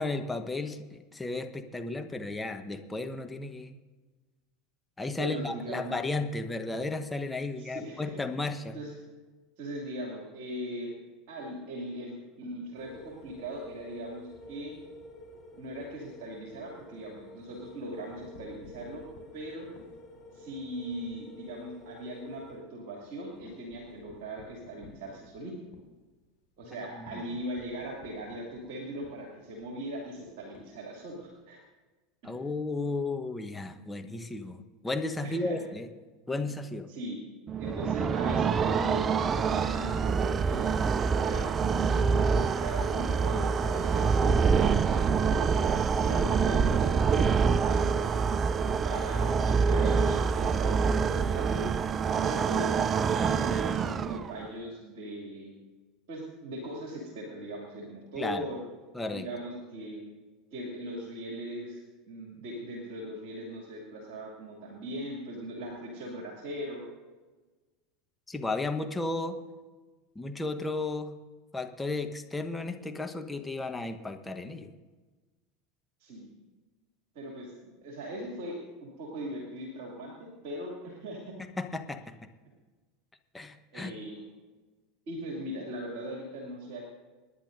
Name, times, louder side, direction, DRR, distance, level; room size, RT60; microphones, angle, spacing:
voice 1, 0.0-3.7 5.0-8.8 26.7-27.2 32.2-35.9 36.3-36.9 58.1-58.4 58.9-59.3 68.3-69.4 70.1-71.2 71.5-74.7 81.6-82.1 83.3-84.0, left 2 dB, 10° left, 6 dB, 1.1 m, -34 dB
voice 2, 5.1-5.9 7.6-8.2 8.7-9.0 9.6-11.0 11.3-14.8 15.5-19.1 19.3-19.7 20.3-25.5 26.6-31.6 32.2-32.3 35.2-35.6 36.9-37.2 37.6-40.7 41.1-48.1 48.8-51.7 52.2-55.6 56.1-58.6 59.1-60.0 60.5-66.8 76.0-76.3 77.1-81.4 83.7-84.2 85.1-86.9, right 1 dB, 55° right, -1 dB, 2.6 m, -40 dB
sound 1, 12.8-22.6, left 2 dB, 30° left, 4.5 m, -50 dB
sound 2, 18.0-21.2 21.6-21.8 22.1-22.2 22.5-31.3, left 4 dB, 80° left, 3.8 m, -55 dB
sound 3, 37.5-54.5, right 5 dB, 30° right, 0.4 m, -26 dB
27.5 x 10.0 x 2.6 m, 1.3 s
figure-of-eight pair, 80°, 0 cm